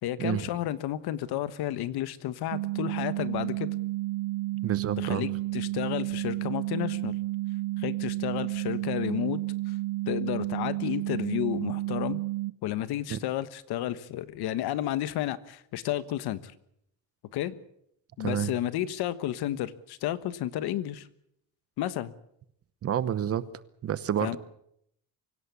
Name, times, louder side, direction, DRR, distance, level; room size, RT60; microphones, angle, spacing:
voice 1, 0.0-3.7 5.0-7.1 7.8-9.7 10.1-12.2 12.6-16.5 17.3-17.5 18.2-21.1 21.8-22.1 24.2-24.4, left 12 dB, 75° left, 14 dB, 1.4 m, -32 dB
sound 1, 2.5-12.5, right 18 dB, 80° right, 0.8 m, -31 dB
voice 2, 4.6-5.3 13.1-13.2 18.2-18.5 22.8-23.4 23.8-24.4, right 9 dB, 35° right, 16 dB, 1.0 m, -29 dB
24.5 x 17.0 x 8.3 m, 0.74 s
cardioid pair, 175°, 39 cm